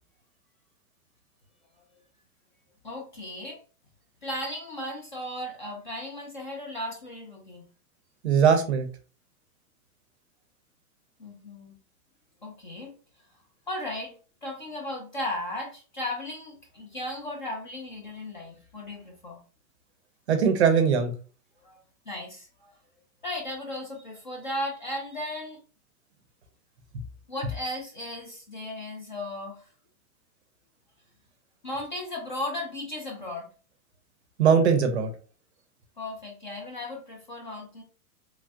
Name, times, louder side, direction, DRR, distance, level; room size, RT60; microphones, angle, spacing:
voice 1, 2.8-3.6 4.2-7.6 11.2-11.8 12.4-12.9 13.7-14.1 14.4-19.4 21.6-21.8 22.1-22.7 23.2-25.6 27.3-29.7 31.6-33.5 36.0-37.8, left 1 dB, 35° left, 1 dB, 0.4 m, -36 dB
voice 2, 8.2-8.9 20.3-21.1 34.4-35.1, right 6 dB, 50° right, 7 dB, 0.5 m, -20 dB
3.1 x 2.3 x 2.5 m, 0.37 s
hypercardioid pair, 170°, 45 cm